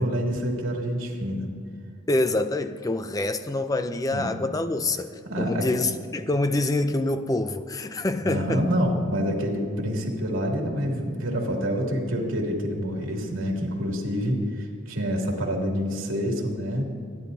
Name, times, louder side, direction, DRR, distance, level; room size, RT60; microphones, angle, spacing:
voice 1, 0.0-1.5 4.1-4.6 5.2-5.7 8.2-16.8, equal, 75° right, 0 dB, 2.6 m, -27 dB
voice 2, 2.1-5.1 5.4-8.7, left 2 dB, 15° left, 10 dB, 0.4 m, -26 dB
25.0 x 10.5 x 2.7 m, 2.2 s
head